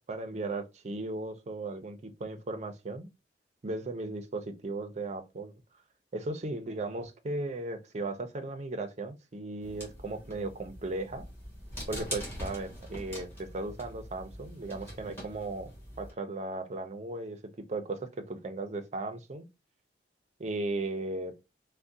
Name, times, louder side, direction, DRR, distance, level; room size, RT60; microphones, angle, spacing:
voice 1, 0.1-3.1 3.6-5.5 6.1-11.3 11.9-15.7 16.0-19.5 20.4-21.4, right 2 dB, 40° right, 0.5 m, -36 dB
sound 1, 9.6-16.1, equal, 15° left, 1.3 m, -43 dB
3.5 x 2.1 x 2.6 m
head